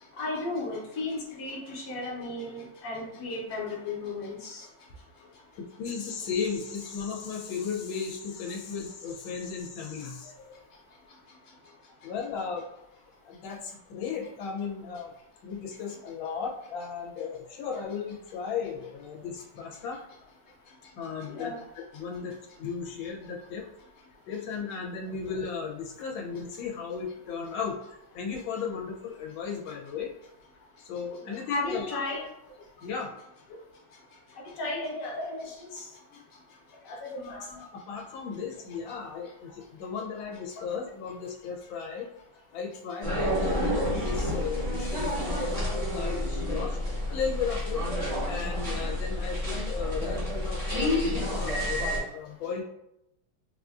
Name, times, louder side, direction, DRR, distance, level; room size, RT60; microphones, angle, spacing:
voice 1, 0.2-4.6 21.3-21.6 31.2-32.2 34.6-35.9 36.8-37.5, left 2 dB, 55° left, -2 dB, 1.1 m, -34 dB
voice 2, 5.5-10.6 11.6-11.7 12.0-12.7 13.3-15.1 15.4-20.0 21.0-21.5 21.9-23.7 24.3-27.8 28.1-30.1 30.8-32.0 32.8-33.2 36.1-36.2 37.1-42.1 42.5-46.8 47.1-47.8 48.2-51.8 52.1-52.6, left 6 dB, 90° left, -1 dB, 1.4 m, -35 dB
sound 1, 43.0-52.0, left 1 dB, 35° right, 0.5 m, -29 dB
4.1 x 2.4 x 2.4 m, 0.83 s
omnidirectional pair, 2.1 m